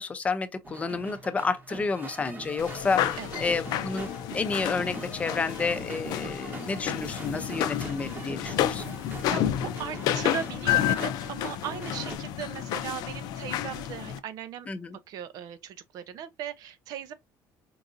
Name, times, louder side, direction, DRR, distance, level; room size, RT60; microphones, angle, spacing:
voice 1, 0.0-8.8 14.7-15.0, left 4 dB, 20° left, 0.6 m, -30 dB
sound 1, 0.6-12.2, right 4 dB, 25° right, 0.9 m, -43 dB
sound 2, 2.6-14.2, left 11 dB, 70° left, 0.5 m, -30 dB
voice 2, 3.2-3.5 7.8-8.3 9.3-14.7 15.1-17.1, right 8 dB, 65° right, 0.7 m, -38 dB
4.6 x 2.6 x 2.6 m
cardioid pair, 140°, 7 cm